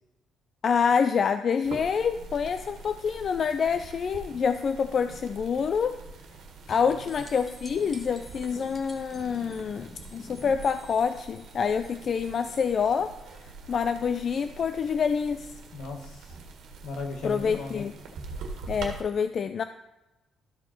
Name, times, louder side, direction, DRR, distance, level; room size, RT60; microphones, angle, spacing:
voice 1, 0.6-6.0 6.7-15.5 17.2-17.9 18.7-19.6, left 6 dB, 50° left, 10 dB, 0.4 m, -27 dB
sound 1, 1.6-19.0, right 3 dB, 80° right, 1.6 m, -44 dB
voice 2, 6.8-7.2 15.7-16.4 16.8-17.9, left 3 dB, 80° left, 3 dB, 1.5 m, -37 dB
sound 2, 7.0-12.7 15.6-15.7, left 2 dB, 25° left, 1.5 m, -49 dB
13.0 x 4.9 x 4.4 m, 0.97 s
cardioid pair, 90°, 0 cm